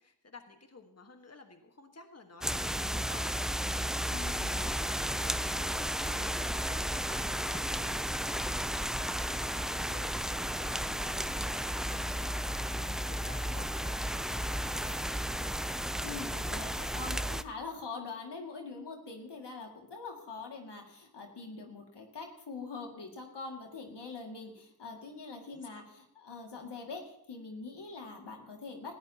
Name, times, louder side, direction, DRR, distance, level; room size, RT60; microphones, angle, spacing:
voice 1, 0.0-15.2 25.5-25.8, left 3 dB, 40° left, 5 dB, 1.5 m, -54 dB
sound 1, 2.4-17.4, equal, ahead, 0.4 m, -33 dB
voice 2, 4.1-4.7 16.0-28.9, left 4 dB, 90° left, 1 dB, 2.3 m, -44 dB
19.0 x 14.0 x 2.9 m, 0.77 s
wide cardioid pair, 55°, 40 cm